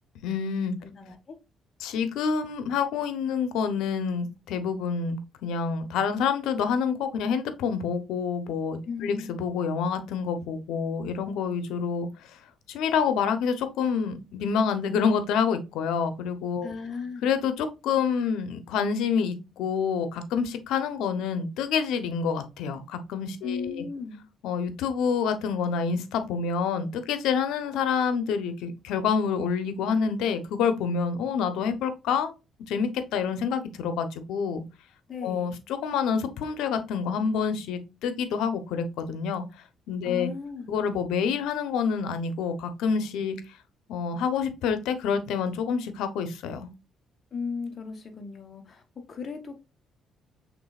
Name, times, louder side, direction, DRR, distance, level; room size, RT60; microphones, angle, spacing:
voice 1, 0.2-0.7 1.8-12.3 12.7-16.7 17.2-23.8 24.4-32.3 32.7-34.6 35.2-39.4 39.9-40.3 40.7-43.4 43.9-46.7, left 6 dB, 85° left, 10 dB, 0.7 m, -27 dB
voice 2, 0.8-1.3 8.9-9.4 16.6-17.3 23.4-24.2 35.1-35.5 40.0-40.7 47.3-48.8 49.1-49.5, left 5 dB, 40° left, 6 dB, 1.0 m, -36 dB
6.0 x 3.5 x 2.3 m, 0.27 s
cardioid pair, 115°, 0 cm